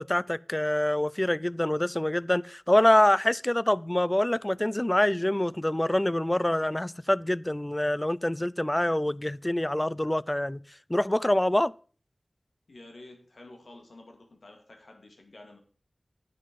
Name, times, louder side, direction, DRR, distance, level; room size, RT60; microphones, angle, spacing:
voice 1, 0.0-10.6 10.9-11.7, left 1 dB, 20° left, 0.4 m, -25 dB
voice 2, 12.7-15.6, left 2 dB, 90° left, 2.2 m, -50 dB
10.0 x 7.7 x 5.3 m
wide cardioid pair, 40°, 0 cm